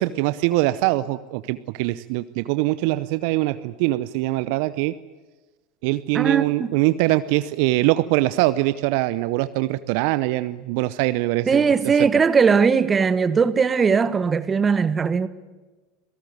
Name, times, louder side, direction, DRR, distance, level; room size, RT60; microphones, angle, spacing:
voice 1, 0.0-4.9 5.8-11.7 12.0-12.1, right 18 dB, 60° right, 0.8 m, -23 dB
voice 2, 6.1-6.7 11.5-15.3, right 5 dB, 25° right, 1.5 m, -19 dB
27.5 x 17.5 x 9.4 m
hypercardioid pair, 80°, 0 cm